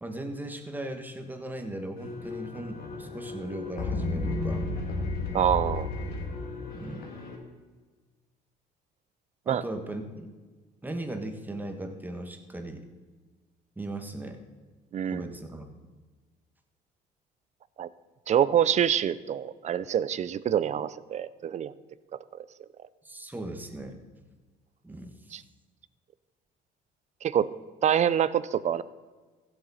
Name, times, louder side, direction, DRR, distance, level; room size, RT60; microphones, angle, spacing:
voice 1, 0.0-4.6 6.7-7.1 9.5-10.3 10.8-12.9 13.8-14.4 15.1-15.7 23.0-24.0 24.8-25.1, right 1 dB, 10° right, 5 dB, 1.4 m, -38 dB
sound 1, 2.0-7.4, left 2 dB, 70° left, 2.5 m, -33 dB
voice 2, 5.3-5.9 9.5-9.6 14.9-15.2 17.8-17.9 18.3-21.7 22.3-22.4 25.3-25.4 27.2-27.5 27.8-28.8, right 9 dB, 45° right, 17 dB, 0.5 m, -26 dB
16.0 x 7.8 x 4.2 m, 1.4 s
cardioid pair, 110°, 17 cm